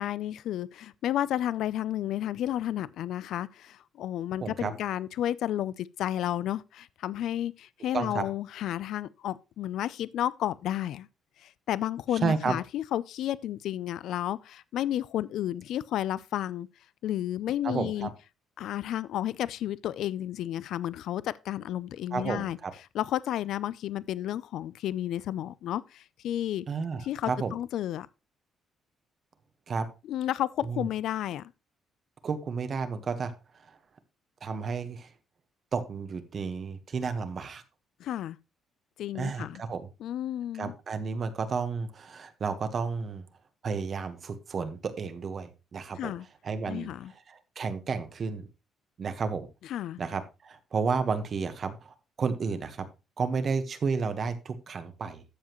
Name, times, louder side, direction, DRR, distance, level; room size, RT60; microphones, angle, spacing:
voice 1, 0.0-11.1 11.4-16.7 17.0-18.1 18.6-22.6 22.9-26.7 27.0-28.1 30.1-31.5 38.0-38.4 39.0-39.6 40.0-40.7 46.0-46.2 46.7-47.1 49.6-50.0, left 12 dB, 70° left, 0.4 m, -32 dB
voice 2, 4.4-4.7 7.9-8.2 12.2-12.5 17.6-18.1 22.1-22.7 26.7-27.5 29.7-29.9 30.7-30.9 32.2-33.3 33.7-33.8 34.4-35.1 35.7-37.6 39.1-39.9 40.5-43.2 43.6-46.1 46.4-46.9 47.3-48.5 49.0-49.5 50.0-52.9 53.2-55.2, right 5 dB, 40° right, 1.2 m, -32 dB
13.0 x 7.3 x 3.0 m
cardioid pair, 145°, 0 cm